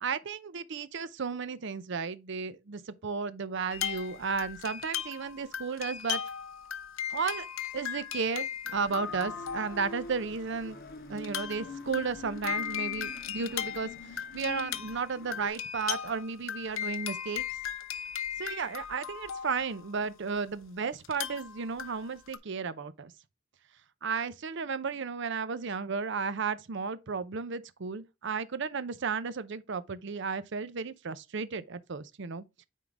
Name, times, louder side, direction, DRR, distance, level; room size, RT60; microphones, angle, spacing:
voice 1, 0.0-6.2 7.1-7.5 7.7-10.8 11.1-17.4 18.4-23.1 24.0-32.4, right 5 dB, 60° right, 0.6 m, -34 dB
sound 1, 3.7-10.1 10.6-10.7 11.2-20.3 21.0-22.4, left 9 dB, 85° left, 0.7 m, -37 dB
sound 2, 8.7-15.5, left 2 dB, 55° left, 1.4 m, -45 dB
9.2 x 3.8 x 3.7 m
head